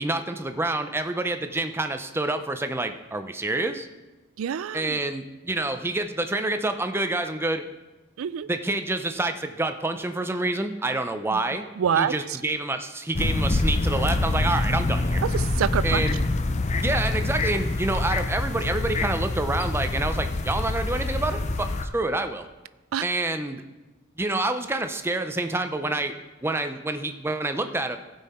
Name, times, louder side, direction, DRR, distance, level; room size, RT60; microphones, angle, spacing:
voice 1, 0.0-3.9 4.7-7.6 8.5-11.7 12.0-15.2 15.8-16.2 16.8-22.4 23.0-23.6 24.2-26.1 26.4-28.0, right 2 dB, 10° right, 8 dB, 0.5 m, -27 dB
voice 2, 4.4-5.0 8.2-8.5 11.3-11.4 11.8-12.1 15.3-16.0 22.9-23.0, right 8 dB, 80° right, 17 dB, 0.3 m, -26 dB
sound 1, 13.1-21.9, left 2 dB, 35° left, 0.6 m, -26 dB
16.0 x 5.5 x 4.3 m, 1.1 s
head